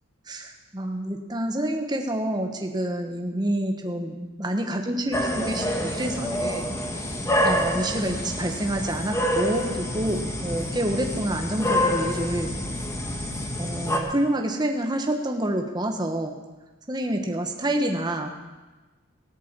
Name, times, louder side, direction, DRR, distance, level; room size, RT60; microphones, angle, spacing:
voice 1, 0.3-6.6 7.4-12.6 13.6-16.4 16.9-18.3, right 1 dB, 20° right, 3 dB, 1.1 m, -28 dB
sound 1, 5.1-14.0, equal, 15° left, 1.4 m, -27 dB
17.0 x 8.4 x 7.4 m, 1.2 s
head